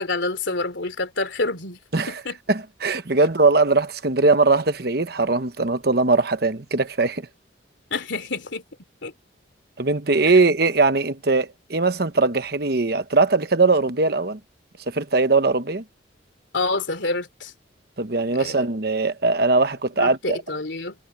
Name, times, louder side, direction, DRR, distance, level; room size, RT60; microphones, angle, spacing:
voice 1, 0.0-1.8 2.1-2.4 7.9-8.6 9.0-9.1 16.5-17.5 18.4-18.5 20.0-20.9, left 3 dB, 70° left, 2.9 m, -27 dB
voice 2, 2.5-7.3 9.8-14.4 14.9-15.8 18.0-20.4, right 3 dB, 55° right, 1.1 m, -20 dB
head